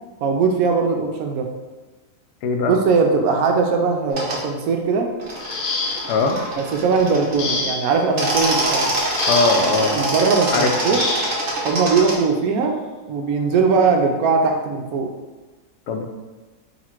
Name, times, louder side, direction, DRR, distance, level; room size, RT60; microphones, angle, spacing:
voice 1, 0.2-1.5 2.7-5.1 6.6-8.9 9.8-11.0 11.6-12.8 13.1-15.1, right 4 dB, 70° right, 3 dB, 1.0 m, -20 dB
voice 2, 2.4-2.7 6.1-6.4 9.3-10.0 10.5-11.0 15.9-16.1, left 3 dB, 90° left, 4 dB, 1.2 m, -20 dB
sound 1, 4.1-4.4 5.2-7.6 8.0-12.2, right 1 dB, 50° right, 1.1 m, -24 dB
sound 2, 5.4-6.3 7.4-8.0 9.2-9.8 10.9-11.4 12.6-12.7 13.3-13.5, left 3 dB, 65° left, 1.0 m, -26 dB
4.0 x 2.5 x 4.3 m, 1.2 s
omnidirectional pair, 1.7 m